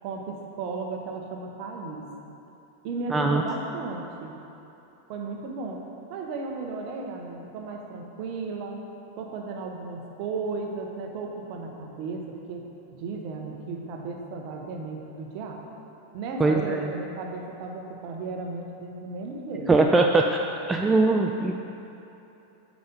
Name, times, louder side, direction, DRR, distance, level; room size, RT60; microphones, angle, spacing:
voice 1, 0.0-2.1 2.8-4.4 5.1-8.8 9.2-12.7 12.9-15.6 16.1-19.7 20.8-21.1, right 3 dB, 45° right, 1 dB, 1.0 m, -35 dB
voice 2, 3.1-3.4 16.4-16.9 19.7-20.4 20.7-21.5, right 3 dB, 15° right, 2 dB, 0.3 m, -21 dB
7.9 x 5.2 x 5.2 m, 3.0 s
figure-of-eight pair, 90°, 0 cm